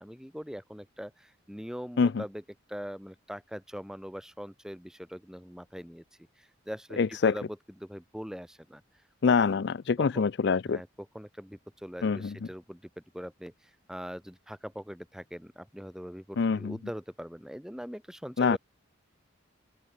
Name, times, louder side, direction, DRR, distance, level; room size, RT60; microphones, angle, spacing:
voice 1, 0.0-2.4 2.7-6.0 6.4-8.8 9.5-9.6 10.0-10.3 10.6-18.6, equal, 5° right, 2.2 m, -42 dB
voice 2, 7.0-7.3 9.2-10.8 12.0-12.3 16.4-16.8 18.4-18.6, left 5 dB, 55° left, 0.4 m, -25 dB
open air
head